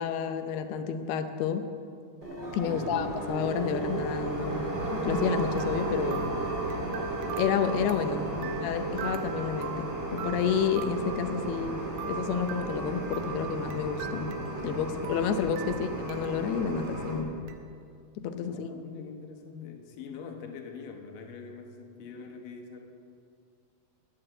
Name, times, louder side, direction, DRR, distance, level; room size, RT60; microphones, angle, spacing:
voice 1, 0.0-1.7 2.5-4.6 4.9-6.3 7.4-8.3 8.6-11.8 12.1-14.3 14.6-17.3 18.2-18.7, left 7 dB, 80° left, 8 dB, 2.8 m, -30 dB
sound 1, 2.2-17.2, right 2 dB, 20° right, 2.1 m, -34 dB
voice 2, 2.6-3.1 8.1-8.9 15.7-15.9 18.4-22.9, left 6 dB, 65° left, 3 dB, 2.5 m, -43 dB
sound 2, 5.6-14.8 15.0-16.5 16.8-16.9 17.5-17.6, right 8 dB, 80° right, 1.8 m, -42 dB
12.0 x 10.5 x 7.7 m, 2.3 s
omnidirectional pair, 4.5 m